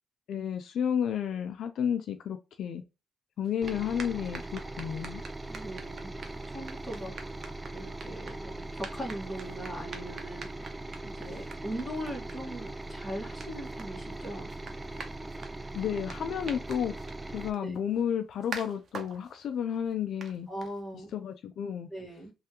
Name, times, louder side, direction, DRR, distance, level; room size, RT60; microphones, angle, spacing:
voice 1, 0.3-2.8 3.4-5.2 15.7-16.9 17.3-20.5 21.1-21.9, left 8 dB, 70° left, 0.4 m, -32 dB
sound 1, 3.4-21.2, right 4 dB, 50° right, 0.8 m, -48 dB
sound 2, 3.6-17.5, right 2 dB, 15° right, 0.4 m, -40 dB
voice 2, 5.5-7.1 7.7-10.7 11.0-14.5 17.6-17.8 20.5-21.1 21.9-22.3, equal, 5° left, 1.5 m, -40 dB
3.3 x 2.4 x 2.8 m
cardioid pair, 90°, 0 cm